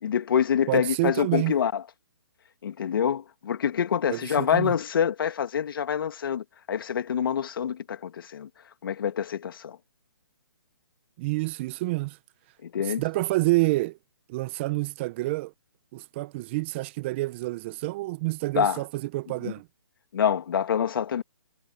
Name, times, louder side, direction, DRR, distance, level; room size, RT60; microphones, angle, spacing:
voice 1, 0.0-1.8 2.6-8.5 8.8-9.8 12.6-13.0 18.5-18.8 19.4-19.5 20.1-21.2, left 8 dB, 55° left, 2.3 m, -26 dB
voice 2, 0.7-1.5 4.1-4.7 11.2-12.2 12.8-14.0 14.3-15.5 15.9-19.7, right 21 dB, 25° right, 0.9 m, -28 dB
hypercardioid pair, 145°, 14 cm